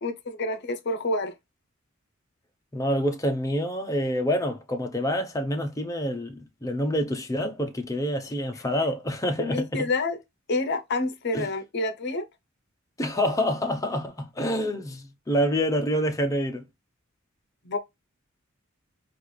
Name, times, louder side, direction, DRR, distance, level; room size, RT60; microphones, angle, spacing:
voice 1, 0.0-1.3 9.4-10.2 10.5-12.2 17.6-17.8, left 2 dB, 55° left, 0.7 m, -28 dB
voice 2, 2.7-9.9 11.3-11.5 13.0-16.7, equal, 15° left, 0.6 m, -27 dB
4.3 x 2.5 x 3.1 m
head